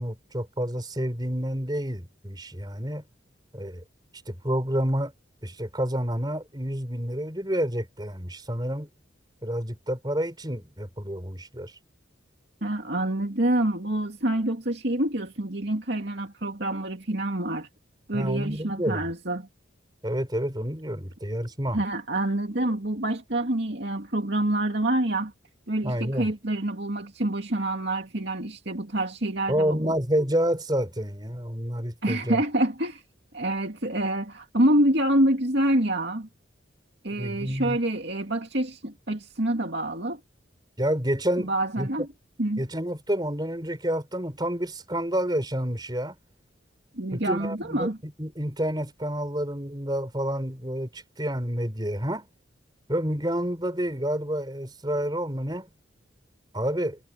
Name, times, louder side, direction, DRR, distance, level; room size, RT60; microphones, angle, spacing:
voice 1, 0.0-3.0 3.5-3.8 4.3-5.1 5.4-8.9 9.4-11.7 18.1-19.0 20.0-21.8 25.8-26.3 29.5-32.4 37.1-37.8 40.8-41.5 41.8-41.9 42.6-46.1 47.1-47.9 48.2-52.3 52.9-55.7 56.5-57.0, equal, 20° right, 4.6 m, -29 dB
voice 2, 12.6-17.7 18.1-19.5 21.7-25.3 25.7-29.9 32.0-33.0 33.3-36.3 37.0-40.2 41.4-42.1 42.4-42.6 46.9-48.0, right 1 dB, 60° right, 2.6 m, -27 dB
head